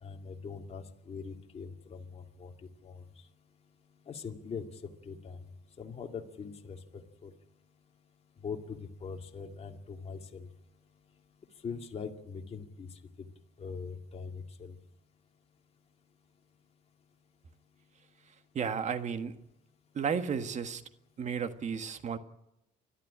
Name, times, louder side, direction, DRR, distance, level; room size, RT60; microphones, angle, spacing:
voice 1, 0.0-2.5 2.8-3.0 4.1-5.4 5.8-6.8 7.2-7.3 8.4-10.5 11.6-12.9 13.2-13.3 13.6-14.8, left 5 dB, 35° left, 3 dB, 2.3 m, -42 dB
voice 2, 18.5-19.3 19.9-20.8 21.2-22.2, right 6 dB, 45° right, 9 dB, 1.7 m, -33 dB
30.0 x 12.5 x 8.7 m, 0.86 s
cardioid pair, 110°, 17 cm